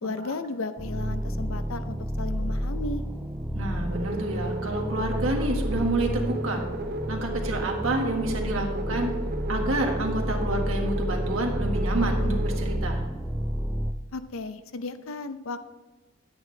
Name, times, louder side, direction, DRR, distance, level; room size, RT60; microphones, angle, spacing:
voice 1, 0.0-3.0 14.1-15.7, left 3 dB, 85° left, 11 dB, 0.6 m, -34 dB
sound 1, 0.8-13.9, equal, 5° right, 0.5 m, -30 dB
voice 2, 3.5-6.7 7.1-9.1 9.5-13.0, right 2 dB, 90° right, 2 dB, 1.7 m, -29 dB
sound 2, 3.9-12.8, right 1 dB, 50° right, 0.7 m, -35 dB
10.5 x 9.4 x 3.3 m, 1.2 s
head